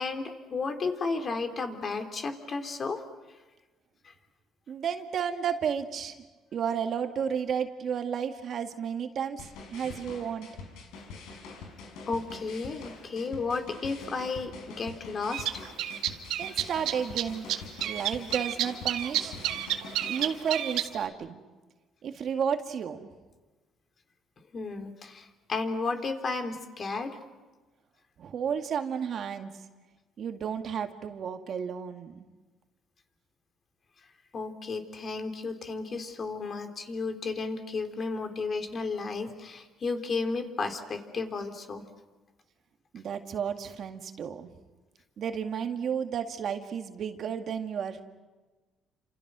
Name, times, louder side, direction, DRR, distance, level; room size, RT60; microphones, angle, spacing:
voice 1, 0.0-3.0 4.0-4.1 9.8-10.0 12.1-15.6 24.5-27.2 34.3-41.8, left 4 dB, 40° left, 6 dB, 3.3 m, -33 dB
voice 2, 4.7-6.2 6.5-10.5 16.4-17.5 17.8-19.4 20.1-21.4 22.0-23.1 28.2-29.5 30.2-32.3 42.9-44.5 45.2-48.0, right 7 dB, 55° right, 6 dB, 2.1 m, -32 dB
sound 1, 9.4-20.3, left 4 dB, 85° left, 5.4 m, -45 dB
sound 2, 15.3-17.2 17.5-21.0, right 12 dB, 85° right, 1.8 m, -30 dB
30.0 x 27.0 x 6.2 m, 1.2 s
cardioid pair, 105°, 0 cm